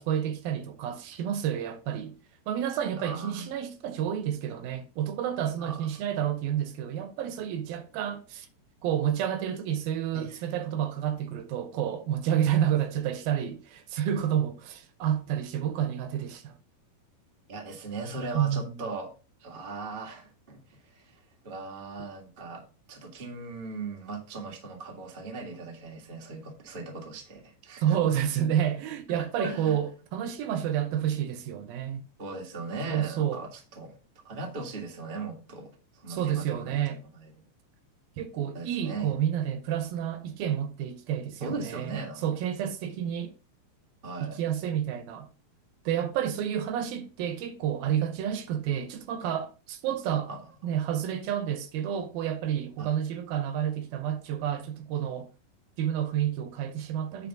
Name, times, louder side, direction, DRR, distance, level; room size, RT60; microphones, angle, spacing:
voice 1, 0.0-2.2 2.5-8.5 8.8-16.6 18.3-18.8 27.8-32.0 32.9-33.4 36.1-37.0 38.2-43.3 44.2-45.3 45.9-50.3 50.6-55.3 55.8-57.3, right 10 dB, 75° right, 2.5 m, -30 dB
voice 2, 2.9-3.5 5.6-5.9 10.1-10.5 17.5-19.1 19.4-22.6 22.9-27.8 29.4-29.8 32.2-34.0 34.2-37.4 38.5-39.1 41.4-42.2 44.0-44.4 50.3-50.4 52.8-52.9, right 3 dB, 50° right, 0.6 m, -39 dB
9.0 x 3.8 x 5.9 m
omnidirectional pair, 4.5 m